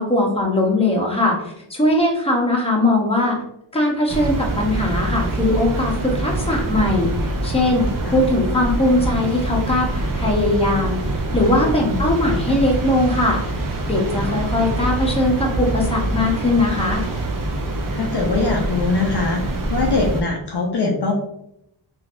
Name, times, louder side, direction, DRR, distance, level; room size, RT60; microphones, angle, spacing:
voice 1, 0.0-3.4 3.7-10.9 11.3-17.0, left 1 dB, 10° left, -1 dB, 0.8 m, -20 dB
sound 1, 4.1-20.2, right 2 dB, 45° right, 0.6 m, -25 dB
voice 2, 18.0-21.1, left 3 dB, 55° left, 0 dB, 0.6 m, -22 dB
3.2 x 2.5 x 2.5 m, 0.78 s
cardioid pair, 50°, 49 cm